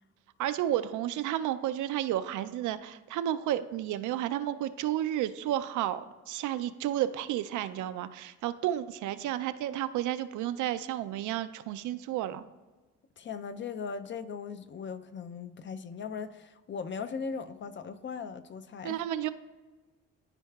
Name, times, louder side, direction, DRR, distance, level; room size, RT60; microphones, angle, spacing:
voice 1, 0.4-6.0 6.3-12.4 18.8-19.3, right 12 dB, 75° right, 0.4 m, -31 dB
voice 2, 13.2-19.0, left 5 dB, 40° left, 0.4 m, -38 dB
12.5 x 4.6 x 2.3 m
cardioid pair, 90°, 30 cm